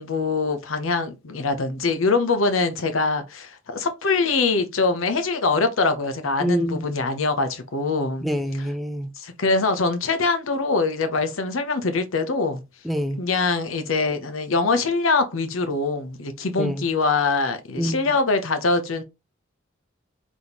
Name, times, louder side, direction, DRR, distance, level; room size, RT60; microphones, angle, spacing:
voice 1, 0.0-8.3 9.2-12.6 13.2-19.0, left 3 dB, 90° left, 0.8 m, -23 dB
voice 2, 6.4-6.8 8.2-9.1 12.8-13.2 16.6-16.8 17.8-18.0, equal, ahead, 0.5 m, -25 dB
4.1 x 3.6 x 2.9 m
head